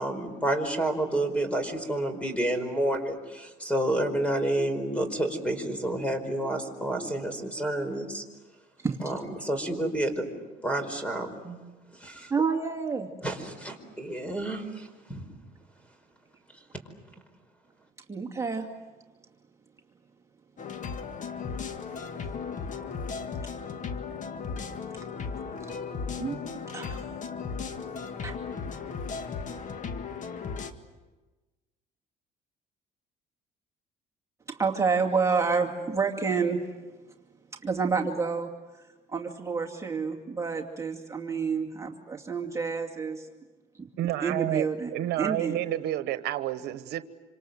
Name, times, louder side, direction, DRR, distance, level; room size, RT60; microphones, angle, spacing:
voice 1, 0.0-8.2 9.0-10.3 10.6-11.6 11.9-12.3 13.2-15.2, right 1 dB, 5° left, 8 dB, 4.9 m, -29 dB
voice 2, 12.3-13.1 18.1-18.7 25.4-25.7 26.2-26.4 26.7-27.0 28.2-28.4 34.5-36.7 37.6-43.3 43.7-43.9 44.2-44.9 45.2-45.6, right 5 dB, 20° right, 1 dB, 2.4 m, -29 dB
sound 1, 20.6-30.7, left 5 dB, 50° left, 1.9 m, -36 dB
voice 3, 44.0-47.1, right 13 dB, 80° right, 11 dB, 1.1 m, -30 dB
27.0 x 26.5 x 7.9 m, 1.2 s
cardioid pair, 110°, 17 cm